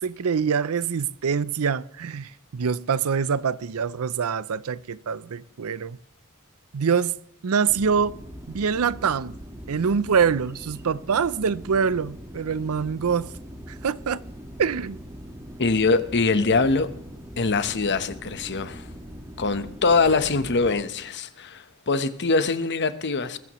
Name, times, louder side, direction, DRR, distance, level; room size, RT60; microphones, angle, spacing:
voice 1, 0.0-6.0 6.7-7.2 7.4-8.2 8.5-9.4 9.7-13.3 13.7-14.2 14.6-15.0, right 6 dB, 70° right, 0.5 m, -25 dB
sound 1, 7.7-20.8, equal, 15° right, 1.5 m, -41 dB
voice 2, 15.6-16.9 17.4-18.9 19.4-23.4, left 4 dB, 50° left, 1.0 m, -23 dB
20.5 x 15.5 x 3.1 m
head